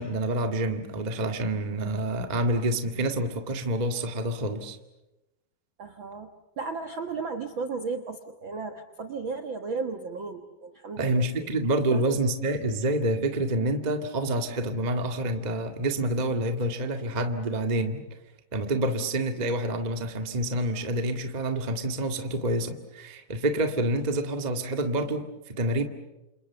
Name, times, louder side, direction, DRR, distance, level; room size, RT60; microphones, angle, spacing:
voice 1, 0.0-4.8 11.0-18.0 18.5-25.8, right 1 dB, 25° right, 5 dB, 0.9 m, -27 dB
voice 2, 5.8-6.3 6.6-11.3 11.9-12.2, right 4 dB, 60° right, 6 dB, 1.3 m, -34 dB
29.0 x 28.0 x 7.0 m, 0.99 s
omnidirectional pair, 4.2 m